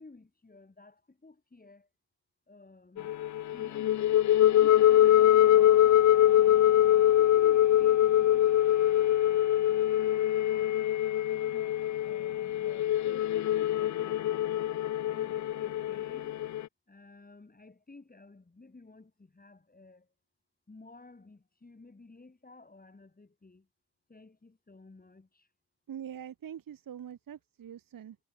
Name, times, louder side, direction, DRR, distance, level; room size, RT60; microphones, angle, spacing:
voice 1, 0.0-1.9 2.5-3.1 3.5-5.8 6.0-9.9 10.4-10.8 11.3-14.2 15.0-16.4 16.9-20.1 20.7-23.7 24.1-25.5, left 3 dB, 20° left, 7.1 m, -54 dB
sound 1, 3.0-16.6, left 12 dB, 45° left, 0.4 m, -24 dB
voice 2, 25.9-28.2, right 9 dB, 50° right, 1.3 m, -43 dB
cardioid pair, 110°, 42 cm